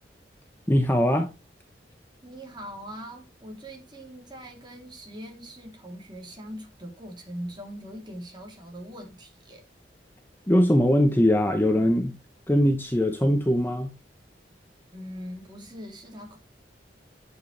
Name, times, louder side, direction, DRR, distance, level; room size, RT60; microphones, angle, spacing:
voice 1, 0.7-1.3 10.5-12.2 12.5-13.9, equal, 10° left, 0.9 m, -21 dB
voice 2, 2.2-9.6 14.9-16.4, equal, 25° right, 3.2 m, -41 dB
8.7 x 8.0 x 3.3 m
head